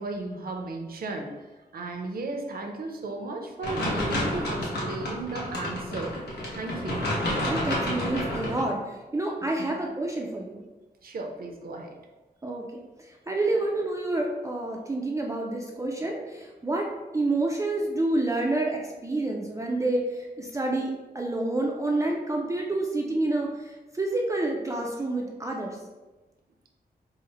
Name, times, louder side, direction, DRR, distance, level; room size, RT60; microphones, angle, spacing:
voice 1, 0.0-1.5 1.7-6.2 6.5-7.0 9.6-9.8 11.0-11.9, right 3 dB, 65° right, 2 dB, 0.6 m, -35 dB
sound 1, 3.6-8.6, left 1 dB, 85° left, 1.0 m, -30 dB
voice 2, 7.5-10.6 12.4-16.9 17.1-25.8, right 2 dB, 20° right, -1 dB, 0.4 m, -28 dB
3.8 x 2.1 x 4.1 m, 1.1 s
wide cardioid pair, 140°, 17 cm